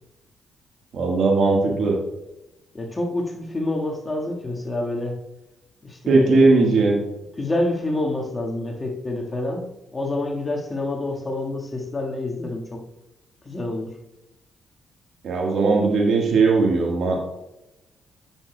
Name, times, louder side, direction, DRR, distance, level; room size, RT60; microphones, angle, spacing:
voice 1, 0.9-2.0 6.1-7.0 15.2-17.3, right 3 dB, 60° right, 1 dB, 1.5 m, -18 dB
voice 2, 2.7-5.2 5.8-6.9 7.4-9.6 9.9-12.8 13.5-13.9, left 2 dB, 30° left, 0 dB, 1.7 m, -28 dB
10.0 x 7.2 x 2.3 m, 0.95 s
hypercardioid pair, 45°, 0 cm